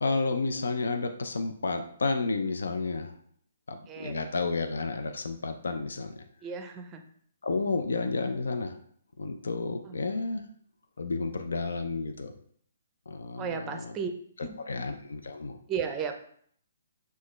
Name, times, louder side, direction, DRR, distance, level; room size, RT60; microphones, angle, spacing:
voice 1, 0.0-3.1 3.7-6.2 7.4-8.8 9.2-10.4 11.0-12.3 13.1-14.0 14.4-15.6, left 3 dB, 80° left, 6 dB, 0.5 m, -31 dB
voice 2, 3.9-4.2 6.4-7.0 9.9-10.0 13.4-14.1 14.4-14.8 15.7-16.1, right 6 dB, 20° right, 6 dB, 0.5 m, -34 dB
6.3 x 2.4 x 3.1 m, 0.62 s
hypercardioid pair, 150°, 0 cm